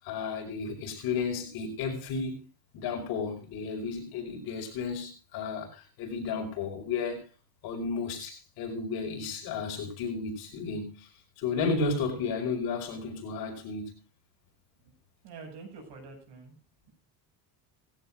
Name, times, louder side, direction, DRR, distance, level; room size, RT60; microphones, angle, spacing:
voice 1, 0.0-2.4 2.7-7.2 7.6-11.1 11.4-14.0, left 4 dB, 60° left, 5.6 m, -33 dB
voice 2, 15.2-16.6, right 4 dB, 70° right, 7.5 m, -46 dB
18.5 x 16.0 x 2.6 m
cardioid pair, 170°, 41 cm